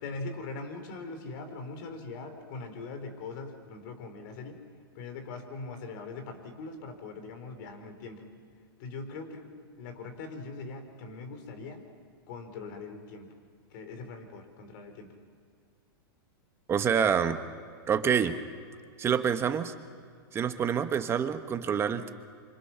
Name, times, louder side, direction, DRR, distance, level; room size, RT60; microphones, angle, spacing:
voice 1, 0.0-4.6 4.9-8.2 8.8-9.5 9.8-11.8 12.3-13.3 13.7-15.1, left 3 dB, 55° left, 7 dB, 4.1 m, -41 dB
voice 2, 16.7-17.4 17.9-18.3 19.0-19.7 20.3-22.1, right 7 dB, 20° right, 8 dB, 1.2 m, -27 dB
27.5 x 25.5 x 5.8 m, 2.2 s
supercardioid pair, 145°, 13 cm